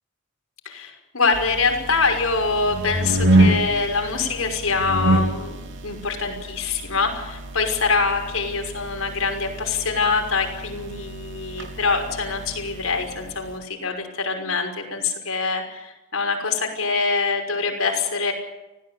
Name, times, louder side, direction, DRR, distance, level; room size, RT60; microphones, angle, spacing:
voice 1, 0.6-18.3, left 4 dB, 75° left, 3 dB, 5.9 m, -24 dB
sound 1, 1.3-13.6, right 1 dB, 60° right, 3.6 m, -27 dB
25.0 x 17.0 x 8.6 m, 1.0 s
head